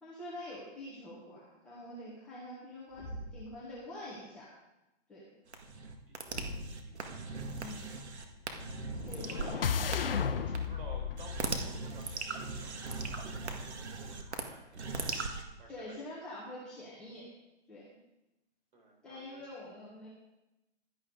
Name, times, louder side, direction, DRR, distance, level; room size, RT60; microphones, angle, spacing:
voice 1, 0.0-4.5 5.1-5.2 7.6-7.8 9.0-10.1 15.7-17.3 17.7-17.9 19.0-20.1, left 1 dB, 5° left, -9 dB, 1.1 m, -46 dB
Thump thud, 2.9-3.6 6.3-6.8, left 1 dB, 20° left, 3.0 m, -43 dB
sound 1, 5.5-9.6 9.9-10.0 10.5-10.6 11.2-14.4 14.7-15.4, right 4 dB, 70° right, 2.0 m, -39 dB
voice 2, 6.1-6.6 6.8-6.9 9.2-9.7 10.0-14.9 15.6-16.0 18.7-19.4 19.7-19.9, right 2 dB, 45° right, 2 dB, 4.2 m, -54 dB
sound 2, 8.5-12.7, left 6 dB, 50° left, 0.8 m, -35 dB
16.5 x 11.5 x 3.9 m, 0.95 s
hypercardioid pair, 170°, 35 cm